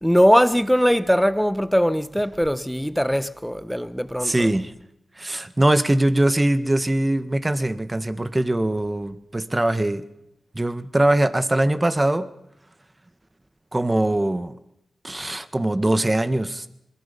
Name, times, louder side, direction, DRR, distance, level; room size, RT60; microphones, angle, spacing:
voice 1, 0.0-4.5, equal, ahead, 1.1 m, -20 dB
voice 2, 4.2-4.7 5.2-10.0 10.6-12.3 13.7-14.6 15.0-16.7, right 1 dB, 20° right, 1.6 m, -22 dB
26.5 x 22.0 x 5.4 m
cardioid pair, 55°, 0 cm